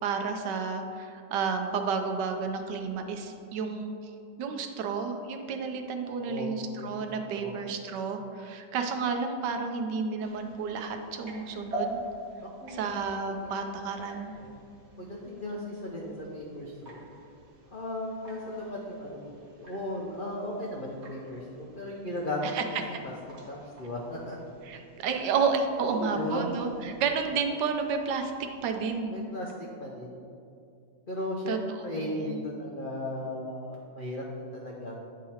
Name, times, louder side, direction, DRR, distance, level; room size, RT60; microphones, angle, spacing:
voice 1, 0.0-3.9 4.4-12.0 12.7-14.3 22.4-22.6 22.9-23.0 24.7-28.3 28.6-29.1 31.5-32.4, right 5 dB, 75° right, 4 dB, 1.2 m, -31 dB
voice 2, 6.2-7.1 7.3-7.5 12.4-12.8 13.3-13.4 14.4-14.6 15.0-17.0 17.7-22.5 23.0-23.1 23.5-24.4 25.8-26.5 29.1-29.5 29.8-30.2 31.1-35.1, left 1 dB, 85° left, -3 dB, 0.4 m, -36 dB
sound 1, 10.2-29.0, right 1 dB, 40° right, 1.3 m, -46 dB
9.2 x 3.8 x 4.2 m, 2.5 s
omnidirectional pair, 2.0 m